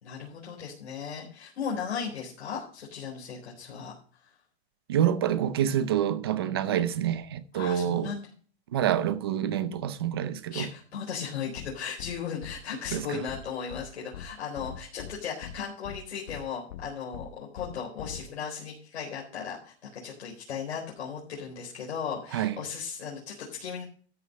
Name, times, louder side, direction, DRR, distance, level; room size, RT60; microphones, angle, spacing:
voice 1, 0.0-3.9 4.2-4.3 7.5-8.3 10.5-23.8, left 6 dB, 80° left, 4.2 m, -36 dB
voice 2, 4.9-8.1 8.7-10.7 12.9-13.2 22.3-22.6, right 10 dB, 25° right, 0.5 m, -27 dB
sound 1, 11.6-11.7 12.0-12.1 12.4-12.5 12.8-13.0 13.3-13.4 13.7-13.8 14.1-14.3 14.6-15.1 15.4-15.5 15.8-16.0 16.3-16.4 16.7-16.8 17.1-17.3 17.6-17.7 18.0-18.2, left 10 dB, 40° left, 0.9 m, -41 dB
13.5 x 6.3 x 5.3 m
hypercardioid pair, 175°, 33 cm